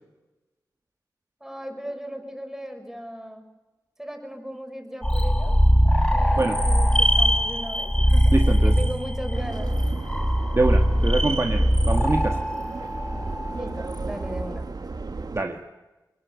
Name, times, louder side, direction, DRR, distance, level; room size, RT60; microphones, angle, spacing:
voice 1, 1.4-3.4 4.0-5.6 6.1-9.7 13.5-14.7, equal, 5° right, 5 dB, 5.6 m, -37 dB
sound 1, 5.0-14.7, equal, 10° left, 5.1 m, -21 dB
voice 2, 8.3-8.8 10.5-12.4 15.3-15.6, right 2 dB, 35° right, 4 dB, 1.6 m, -25 dB
Subway metro underground, 9.3-15.4, right 3 dB, 60° right, 1.4 m, -35 dB
22.5 x 21.0 x 8.3 m, 1.1 s
wide cardioid pair, 70°, 8 cm